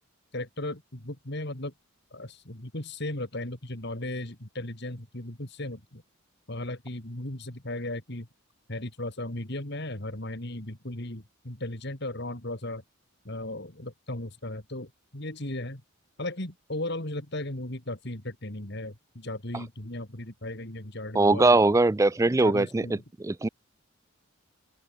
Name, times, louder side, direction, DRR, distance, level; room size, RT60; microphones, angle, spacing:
voice 1, 0.3-1.7 2.1-6.0 6.5-8.3 8.7-12.8 13.2-15.8 16.2-21.6 22.4-23.0, left 1 dB, 50° left, 3.3 m, -36 dB
voice 2, 21.1-22.9 23.2-23.5, right 2 dB, 15° right, 0.3 m, -21 dB
head